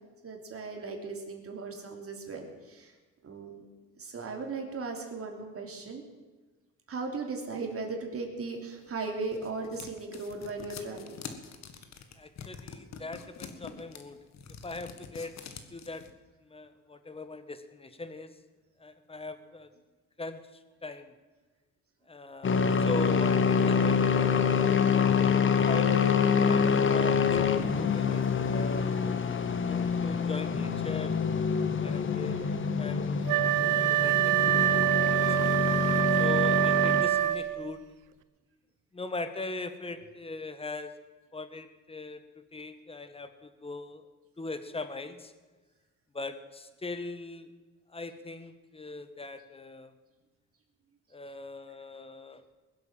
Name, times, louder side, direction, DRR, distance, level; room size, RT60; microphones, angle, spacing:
voice 1, 0.2-2.9 3.2-3.6 4.0-6.0 6.9-11.2, right 3 dB, 50° right, 2 dB, 3.3 m, -37 dB
sound 1, 8.8-16.1, left 7 dB, 60° left, 1.7 m, -45 dB
voice 2, 12.2-14.2 14.6-15.3 15.7-16.0 16.4-18.3 18.8-19.7 20.2-21.1 22.1-24.2 24.8-29.0 29.6-31.2 31.8-32.4 32.8-34.7 35.1-35.6 36.2-37.8 38.9-40.9 41.3-44.1 44.4-45.3 46.1-47.5 47.9-49.9 51.1-52.5, left 3 dB, 20° left, 10 dB, 1.4 m, -40 dB
sound 2, 22.4-37.0, left 6 dB, 40° left, 1.3 m, -26 dB
Wind instrument woodwind instrument, 33.3-37.7, right 15 dB, 90° right, 0.7 m, -25 dB
21.5 x 7.8 x 7.6 m, 1.3 s
cardioid pair, 90°, 30 cm